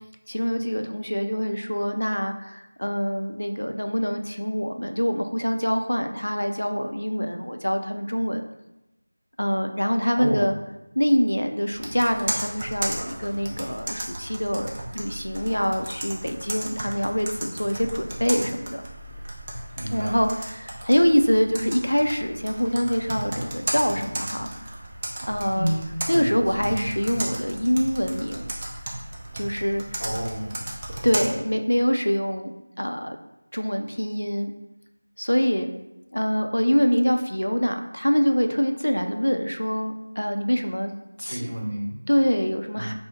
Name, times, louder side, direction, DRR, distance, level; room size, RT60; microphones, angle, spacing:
voice 1, 0.3-8.4 9.4-10.5 11.0-18.8 19.9-24.5 25.3-25.7 26.1-28.5 29.3-30.0 31.0-32.5 32.8-33.2 33.5-34.5 35.2-35.7 36.1-40.9 41.2-41.5 42.1-42.9, equal, 80° left, 5 dB, 0.4 m, -25 dB
voice 2, 10.1-10.5 19.8-20.2 25.5-25.8 26.1-26.3 26.6-26.9 30.0-30.7 41.3-42.0 42.8-42.9, right 1 dB, 55° right, -1 dB, 0.8 m, -29 dB
Computer keyboard, 11.7-31.3, right 1 dB, 20° right, 0.4 m, -35 dB
4.7 x 2.1 x 3.0 m, 0.92 s
figure-of-eight pair, 170°, 0 cm